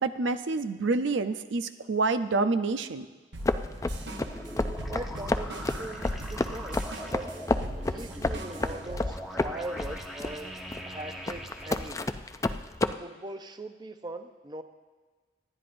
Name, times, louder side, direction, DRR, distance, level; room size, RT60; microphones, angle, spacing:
voice 1, 0.0-3.1, right 3 dB, 80° right, 10 dB, 0.6 m, -27 dB
sound 1, 3.3-9.0, right 1 dB, 65° right, 1.0 m, -41 dB
sound 2, 3.5-12.9, left 2 dB, 15° left, 0.3 m, -30 dB
sound 3, 3.8-11.9, equal, ahead, 1.0 m, -41 dB
voice 2, 4.9-7.3 7.7-12.2 13.0-14.6, right 2 dB, 25° right, 7 dB, 0.6 m, -41 dB
26.0 x 10.5 x 2.6 m, 1.4 s
head